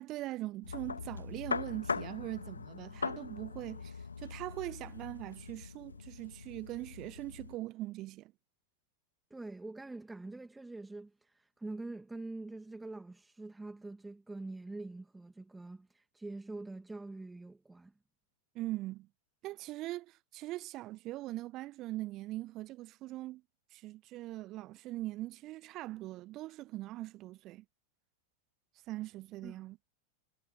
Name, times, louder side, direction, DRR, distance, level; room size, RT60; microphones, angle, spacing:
voice 1, 0.0-8.3 18.5-19.1 19.4-23.4 23.7-27.6 28.9-29.8, right 17 dB, 35° right, 0.6 m, -41 dB
sound 1, 0.6-7.6, left 5 dB, 75° left, 2.3 m, -41 dB
voice 2, 9.3-17.9 29.4-29.6, right 2 dB, 5° right, 2.4 m, -45 dB
figure-of-eight pair, 90°, 0 cm